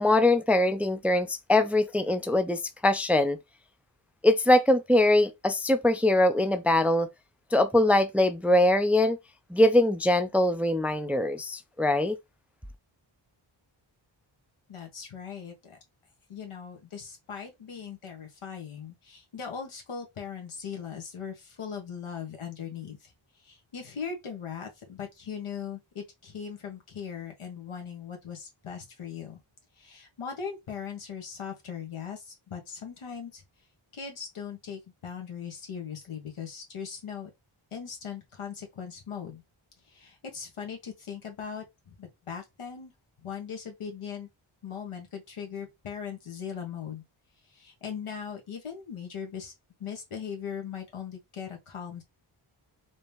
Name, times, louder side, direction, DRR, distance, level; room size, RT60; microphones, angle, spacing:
voice 1, 0.0-3.4 4.2-7.1 7.5-9.2 9.5-12.2, left 1 dB, 5° right, 0.4 m, -22 dB
voice 2, 14.7-15.8 16.3-23.1 23.4-29.4 29.8-33.4 33.9-37.3 37.7-39.4 39.9-42.9 43.2-44.3 44.6-47.0 47.5-49.5 49.8-52.0, left 7 dB, 80° left, 1.5 m, -39 dB
4.1 x 2.8 x 3.4 m
cardioid pair, 50°, 49 cm